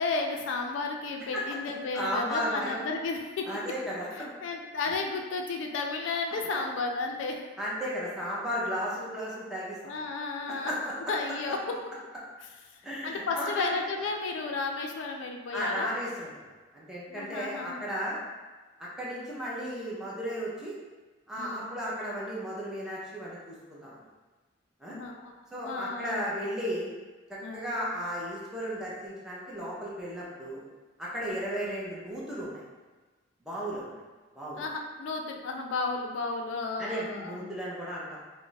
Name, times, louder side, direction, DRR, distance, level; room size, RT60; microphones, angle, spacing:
voice 1, 0.0-3.5 4.2-7.4 9.8-10.7 11.1-11.6 13.0-15.9 17.1-17.8 21.4-21.7 24.9-26.2 27.4-27.7 34.6-37.4, left 3 dB, 70° left, 2 dB, 0.3 m, -33 dB
voice 2, 1.9-2.8 3.5-4.1 6.5-6.6 7.6-10.0 10.5-10.9 12.8-13.7 15.5-16.5 16.7-18.2 18.8-20.7 21.3-24.0 24.8-25.0 25.5-26.9 27.3-30.6 31.0-32.6 33.5-34.0 34.3-34.6 36.8-38.2, equal, 5° right, -7 dB, 0.5 m, -34 dB
2.3 x 2.1 x 3.8 m, 1.3 s
head